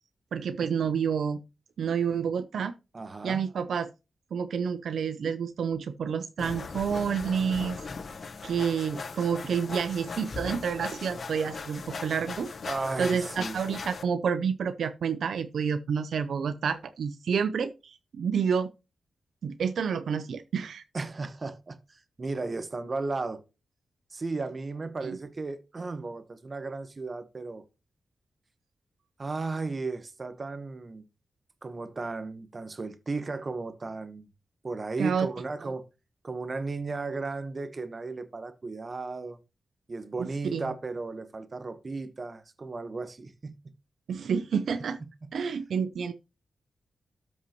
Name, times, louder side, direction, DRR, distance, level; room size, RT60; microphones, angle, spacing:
voice 1, 0.3-1.4 1.8-2.7 3.2-3.9 4.3-7.8 8.4-12.5 13.0-18.7 19.4-20.8 25.0-25.2 35.0-35.3 40.2-40.7 44.1-45.0 45.3-46.1, right 6 dB, 80° right, 0.5 m, -29 dB
voice 2, 2.9-3.4 12.6-13.6 20.9-23.4 24.1-27.6 29.2-31.0 31.6-34.3 34.6-35.9 36.2-39.4 39.9-43.5 45.2-45.3, right 3 dB, 45° right, 1.1 m, -35 dB
sound 1, 6.4-14.0, left 4 dB, 60° left, 0.9 m, -39 dB
13.0 x 5.5 x 3.0 m
cardioid pair, 60°, 0 cm